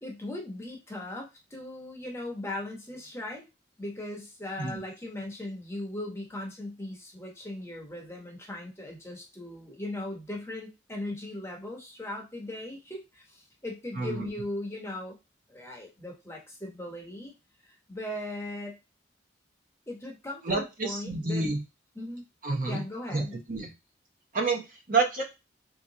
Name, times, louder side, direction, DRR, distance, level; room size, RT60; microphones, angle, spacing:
voice 1, 0.0-3.4 3.8-15.2 15.5-17.3 17.6-18.8 19.9-21.5 22.0-22.2 22.7-23.4, left 1 dB, 15° left, 0 dB, 0.8 m, -38 dB
voice 2, 14.0-14.3 20.4-21.6 22.4-22.8 23.1-23.7 24.3-25.2, right 3 dB, 45° right, 1 dB, 0.7 m, -29 dB
3.4 x 2.9 x 2.7 m, 0.25 s
head